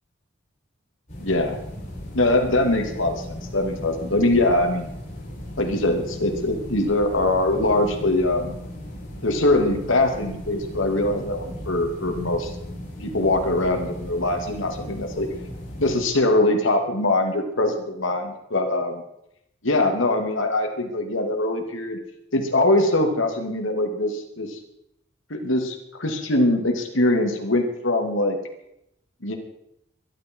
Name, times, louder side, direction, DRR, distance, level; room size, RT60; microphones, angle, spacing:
sound 1, 1.1-16.0, equal, 40° left, 7.5 m, -36 dB
voice 1, 1.2-1.6 2.1-4.9 5.6-8.6 9.2-12.5 13.0-15.3 15.8-19.0 19.6-22.0 22.3-24.6 25.3-28.4 29.2-29.3, left 2 dB, 80° left, 4 dB, 2.5 m, -22 dB
22.0 x 12.0 x 4.6 m, 0.81 s
head